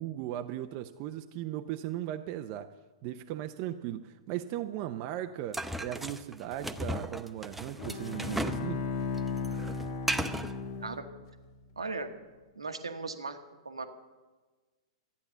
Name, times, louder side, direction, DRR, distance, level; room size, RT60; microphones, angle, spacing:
voice 1, 0.0-2.7 3.0-8.9, right 12 dB, 45° right, 7 dB, 0.6 m, -37 dB
sound 1, 5.5-8.7 8.9-10.5, right 1 dB, 5° right, 0.6 m, -35 dB
Bowed string instrument, 7.8-11.3, left 4 dB, 55° left, 1.8 m, -35 dB
voice 2, 11.8-12.1 12.5-13.4 13.6-13.9, right 3 dB, 85° right, 7 dB, 1.2 m, -37 dB
13.5 x 9.6 x 6.8 m, 1.3 s
hypercardioid pair, 110°, 3 cm